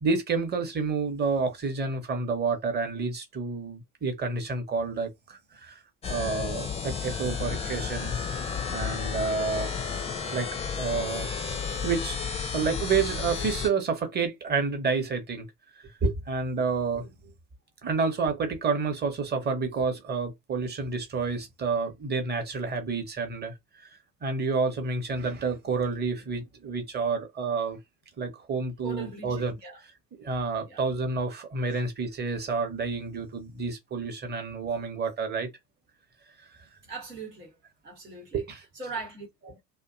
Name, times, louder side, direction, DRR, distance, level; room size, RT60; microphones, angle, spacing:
voice 1, 0.0-5.8 6.1-8.2 8.4-9.7 10.3-10.5 10.8-11.3 11.8-12.2 12.5-15.5 15.8-17.1 17.8-23.5 24.2-27.8 28.2-29.5 30.2-35.5 38.3-38.6, right 4 dB, 20° right, 0.7 m, -29 dB
sound 1, 6.0-13.7, left 6 dB, 15° left, 0.4 m, -32 dB
voice 2, 28.8-29.8 30.6-30.8 31.7-31.8 36.9-37.6 37.8-38.4 38.7-39.6, right 3 dB, 90° right, 1.0 m, -40 dB
2.5 x 2.1 x 2.4 m
figure-of-eight pair, 65°, 47 cm